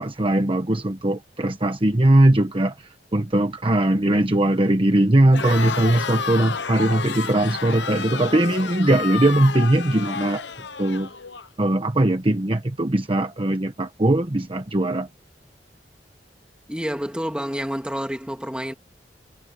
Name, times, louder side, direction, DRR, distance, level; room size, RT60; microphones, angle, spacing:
voice 1, 0.0-2.7 3.1-10.4 10.8-11.1 11.6-15.1, right 1 dB, 30° right, 1.2 m, -20 dB
Crowd, 5.3-11.5, left 6 dB, 85° left, 1.0 m, -30 dB
voice 2, 16.7-18.7, equal, 5° right, 2.4 m, -28 dB
head